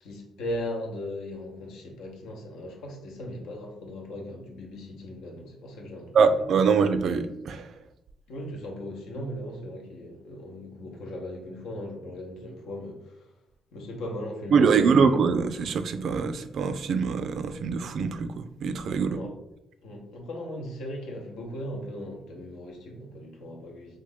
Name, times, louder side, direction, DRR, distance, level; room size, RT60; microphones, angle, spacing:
voice 1, 0.0-6.2 8.3-13.3 13.7-15.1 19.0-19.3 19.8-24.0, left 1 dB, 85° left, 0.8 m, -38 dB
voice 2, 6.1-7.7 14.5-19.2, right 5 dB, 65° right, 0.3 m, -23 dB
3.1 x 2.5 x 3.6 m
cardioid pair, 90°, 0 cm